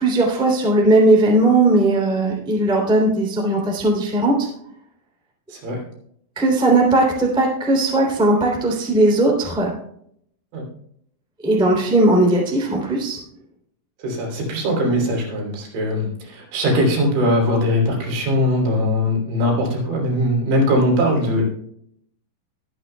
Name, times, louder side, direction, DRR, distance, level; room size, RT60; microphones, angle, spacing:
voice 1, 0.0-4.5 6.3-9.7 11.4-13.2, right 2 dB, ahead, -2 dB, 1.7 m, -17 dB
voice 2, 14.0-21.4, left 1 dB, 65° right, -1 dB, 5.4 m, -20 dB
22.0 x 8.7 x 2.3 m, 0.69 s
omnidirectional pair, 5.7 m